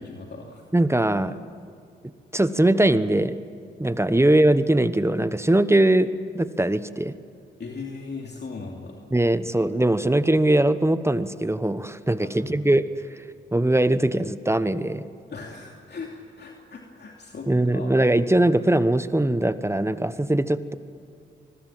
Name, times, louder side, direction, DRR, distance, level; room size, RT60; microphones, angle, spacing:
voice 1, 0.0-0.6 7.6-9.0 12.2-12.6 15.3-18.0, left 4 dB, 55° left, 0 dB, 2.9 m, -38 dB
voice 2, 0.7-1.4 2.3-3.4 3.8-6.1 6.3-7.1 9.1-12.9 13.5-15.1 17.5-20.8, right 1 dB, 15° right, 13 dB, 1.1 m, -21 dB
25.0 x 21.0 x 7.7 m, 2.4 s
supercardioid pair, 50°, 21 cm